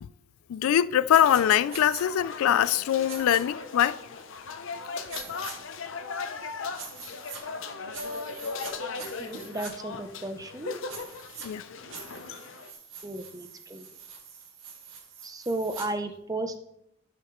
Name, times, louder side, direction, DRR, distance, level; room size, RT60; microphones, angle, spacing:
voice 1, 0.5-4.0 11.4-11.6, left 10 dB, 90° left, 0.3 m, -23 dB
sound 1, 1.1-12.7, left 4 dB, 70° left, 0.7 m, -38 dB
sound 2, 1.1-1.4 1.7-2.0 3.1-3.4 5.1-5.5 6.8-7.4 7.9-8.7 9.0-9.7 10.9-11.5 11.9-15.9, right 6 dB, 70° right, 1.9 m, -43 dB
voice 2, 9.2-10.8 13.0-13.8 15.2-16.6, right 2 dB, 15° right, 0.6 m, -34 dB
13.0 x 6.0 x 3.0 m
head